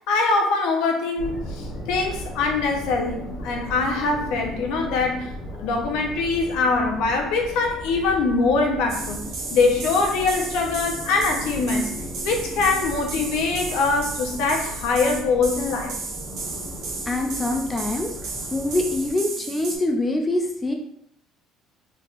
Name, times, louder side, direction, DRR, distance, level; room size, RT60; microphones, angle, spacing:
voice 1, 0.1-5.3 5.6-9.2 9.5-11.9 12.2-15.9, left 3 dB, 75° left, 2 dB, 0.7 m, -23 dB
sound 1, 1.2-19.1, equal, 35° left, 1.5 m, -37 dB
sound 2, 8.9-19.8, right 4 dB, 60° right, 1.0 m, -34 dB
voice 2, 17.0-18.1 18.5-20.7, left 2 dB, 10° left, 3 dB, 0.3 m, -24 dB
3.4 x 3.3 x 2.4 m, 0.76 s
cardioid pair, 165°, 0 cm